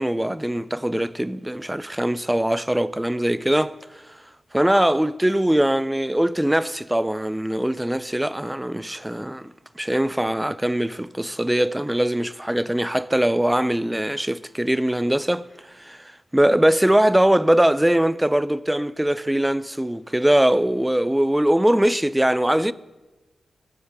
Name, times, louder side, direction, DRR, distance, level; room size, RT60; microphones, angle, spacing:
voice 1, 0.0-3.8 4.5-15.5 15.7-22.7, right 1 dB, 10° right, 0.3 m, -21 dB
14.0 x 5.1 x 3.5 m
supercardioid pair, 40°, 0 cm